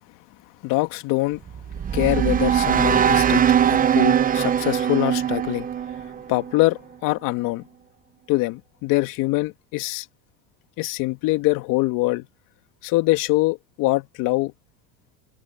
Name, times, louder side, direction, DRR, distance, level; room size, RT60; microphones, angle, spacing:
voice 1, 0.6-1.4 1.9-5.7 6.3-7.6 8.3-10.1 10.8-12.3 12.8-14.5, left 20 dB, 60° left, 2.4 m, -23 dB
sound 1, 1.4-6.7, right 9 dB, 25° right, 0.9 m, -21 dB
supercardioid pair, 120°, 36 cm